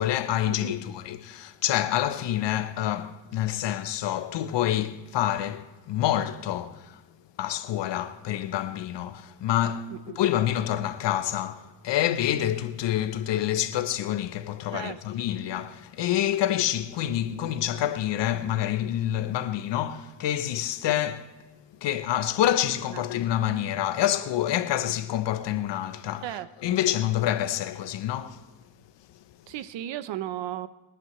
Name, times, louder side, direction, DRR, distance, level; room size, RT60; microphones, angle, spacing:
voice 1, 0.0-7.0 7.4-21.3 21.8-26.3 26.6-28.4, left 12 dB, 70° left, 1.0 m, -27 dB
voice 2, 14.7-15.0 22.9-23.0 26.2-26.8 29.5-30.7, right 12 dB, 70° right, 0.9 m, -35 dB
24.0 x 10.5 x 3.2 m
cardioid pair, 80°, 45 cm